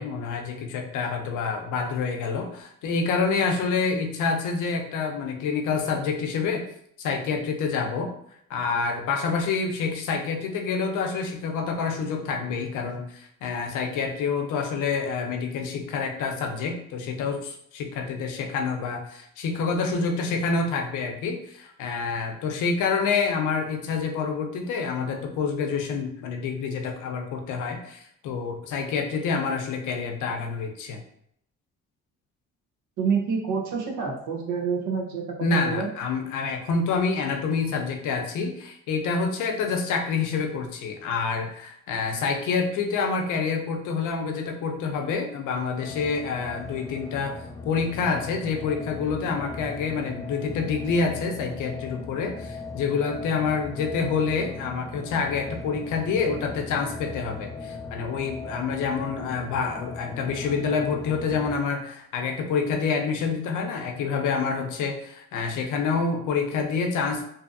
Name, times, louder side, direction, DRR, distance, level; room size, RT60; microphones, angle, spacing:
voice 1, 0.0-6.6 7.0-8.1 8.5-31.0 35.4-47.4 47.6-67.3, left 5 dB, 80° left, 4 dB, 0.6 m, -27 dB
voice 2, 33.0-35.9, right 5 dB, 80° right, 0 dB, 0.8 m, -27 dB
sound 1, 45.8-61.6, left 3 dB, 10° left, 0.3 m, -39 dB
2.6 x 2.5 x 2.5 m, 0.71 s
cardioid pair, 90°, 30 cm